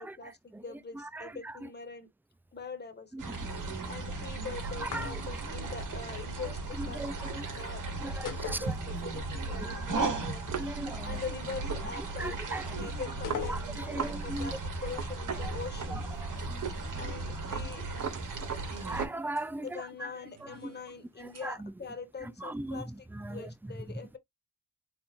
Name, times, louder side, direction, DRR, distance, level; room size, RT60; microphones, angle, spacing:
voice 1, 0.0-2.1 2.5-3.3 3.9-7.1 7.4-10.4 11.0-13.6 13.9-16.0 17.0-17.9 19.6-24.2, left 5 dB, 30° left, 1.5 m, -43 dB
voice 2, 0.9-1.7 3.1-3.2 3.5-3.8 4.8-5.2 6.8-7.5 8.0-8.7 9.6-9.7 10.6-11.2 12.2-12.9 13.5-14.6 15.4-15.5 15.9-16.7 16.9-17.1 18.8-20.1 20.5-20.7 21.2-21.7 22.2-22.8 23.1-23.8, right 1 dB, 5° right, 0.4 m, -39 dB
sound 1, 3.2-19.1, right 3 dB, 75° right, 2.0 m, -36 dB
sound 2, 4.8-5.6 8.3-9.3 9.6-9.7 13.2-14.0, left 8 dB, 80° left, 0.9 m, -40 dB
sound 3, 10.5-14.2 14.5-14.6 14.9-16.2 16.6-16.8 17.1-19.7 20.1-21.5, right 7 dB, 55° right, 1.0 m, -40 dB
4.5 x 3.6 x 2.6 m
cardioid pair, 75°, 32 cm